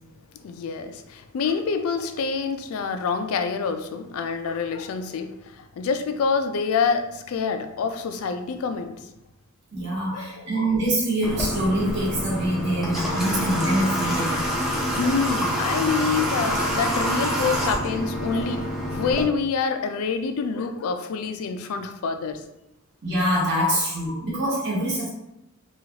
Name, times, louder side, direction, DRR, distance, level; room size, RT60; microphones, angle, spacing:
voice 1, 0.4-9.0 10.1-10.5 15.0-22.4, left 5 dB, 80° left, 7 dB, 0.3 m, -27 dB
voice 2, 9.7-14.4 23.0-25.1, right 1 dB, 55° right, -5 dB, 1.0 m, -25 dB
Water / Water tap faucet, 11.2-19.2, equal, ahead, 0.5 m, -26 dB
2.9 x 2.3 x 2.8 m, 0.85 s
head